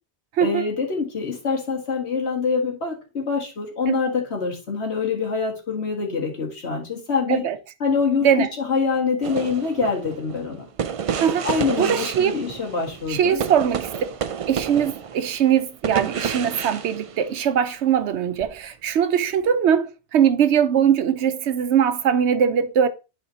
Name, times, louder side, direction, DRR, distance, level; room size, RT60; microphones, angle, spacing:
voice 1, 0.4-7.4 7.8-10.7 11.4-13.4, left 5 dB, 75° left, 2.0 m, -25 dB
sound 1, 9.2-17.7 18.4-18.6, right 7 dB, 65° right, 0.3 m, -30 dB
voice 2, 11.8-12.4 13.1-13.9 14.5-22.9, right 8 dB, 85° right, 1.0 m, -21 dB
10.5 x 4.2 x 2.8 m
omnidirectional pair, 1.1 m